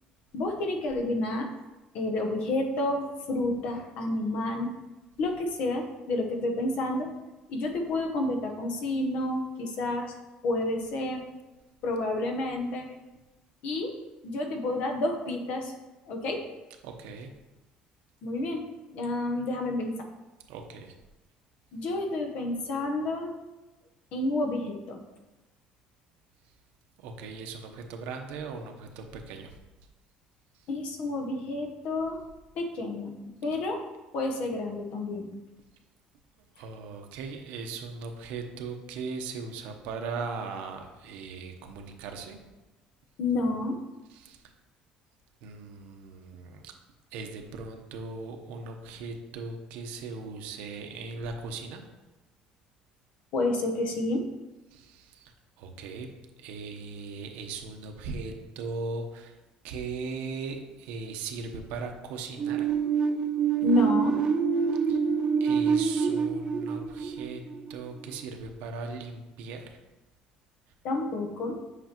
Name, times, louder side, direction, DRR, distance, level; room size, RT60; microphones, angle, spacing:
voice 1, 0.3-1.5 1.9-4.7 5.2-7.1 7.5-10.1 10.4-11.3 11.8-12.8 13.6-13.9 14.2-15.7 16.1-16.4 18.2-20.1 21.7-23.4 24.1-25.0 30.7-32.2 32.6-33.8 34.1-35.3 43.2-43.8 53.3-54.3 63.6-64.2 70.8-71.6, left 2 dB, 55° left, 4 dB, 1.0 m, -30 dB
voice 2, 16.8-17.3 20.5-20.9 27.0-29.6 30.5-30.7 36.6-42.4 44.1-44.4 45.4-46.7 47.1-51.8 54.7-56.1 56.4-59.4 59.6-62.7 64.9-65.0 65.4-67.4 67.7-69.8, right 4 dB, 85° right, 4 dB, 0.9 m, -38 dB
sound 1, 62.4-68.1, right 6 dB, 30° right, 0.4 m, -26 dB
7.9 x 5.9 x 3.0 m, 1.1 s
cardioid pair, 170°, 3 cm